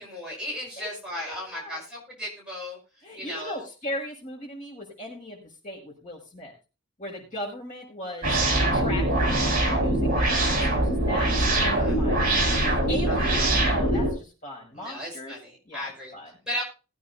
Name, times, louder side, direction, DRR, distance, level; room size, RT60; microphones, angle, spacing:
voice 1, 0.0-2.8 3.1-3.7 11.4-12.0 13.1-13.5 14.7-16.1 16.5-16.6, equal, 5° right, -4 dB, 5.5 m, -36 dB
voice 2, 0.8-1.8 3.0-6.5 7.0-8.3 8.7-11.3 11.6-15.3 15.6-16.3, left 1 dB, 35° left, -2 dB, 6.6 m, -38 dB
sound 1, 8.2-14.1, right 1 dB, 40° right, 5.3 m, -23 dB
20.5 x 9.2 x 2.8 m, 0.32 s
head